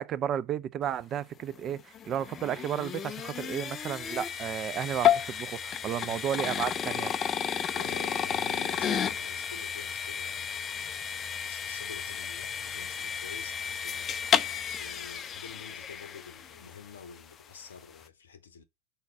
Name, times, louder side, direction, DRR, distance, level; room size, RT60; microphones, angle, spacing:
voice 1, 0.0-7.1, right 10 dB, 30° right, 0.5 m, -33 dB
sound 1, 1.6-16.8, left 8 dB, 25° left, 0.4 m, -32 dB
voice 2, 7.7-18.6, left 6 dB, 65° left, 0.7 m, -48 dB
5.5 x 4.1 x 5.2 m
figure-of-eight pair, 90°, 0 cm